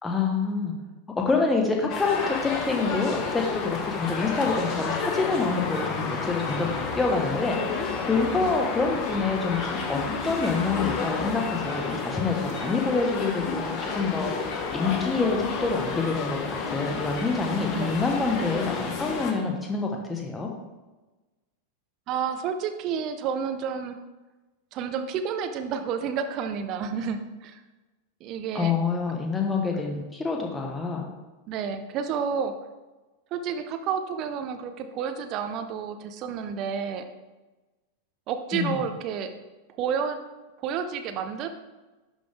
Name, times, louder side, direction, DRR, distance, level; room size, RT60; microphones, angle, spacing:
voice 1, 0.0-0.7 1.2-9.6 9.9-14.3 14.7-16.4 16.7-20.5 28.5-31.0 38.5-38.7, left 4 dB, 10° left, 1 dB, 1.3 m, -27 dB
sound 1, 1.9-19.3, left 4 dB, 35° left, 1.0 m, -31 dB
voice 2, 22.1-24.0 24.7-27.6 28.2-28.7 31.5-32.5 33.3-37.0 38.3-39.3 39.8-40.2 40.6-41.5, right 7 dB, 40° right, 8 dB, 0.7 m, -30 dB
11.5 x 4.0 x 3.6 m, 1.2 s
figure-of-eight pair, 90°, 0 cm